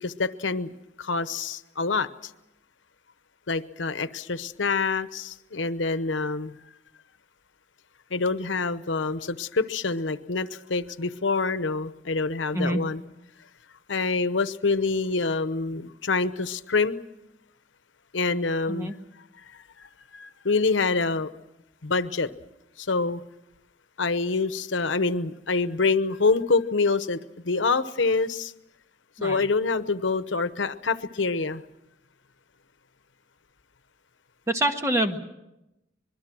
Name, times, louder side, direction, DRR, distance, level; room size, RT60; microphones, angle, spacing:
voice 1, 0.0-2.1 3.5-6.5 8.1-13.0 13.9-17.0 18.1-18.9 19.8-19.9 20.1-21.3 21.8-22.3 22.8-23.2 24.0-28.5 29.2-31.6, left 4 dB, 90° left, 12 dB, 0.9 m, -26 dB
voice 2, 34.5-35.2, right 1 dB, 15° right, 5 dB, 1.5 m, -25 dB
25.5 x 21.5 x 6.2 m, 0.92 s
head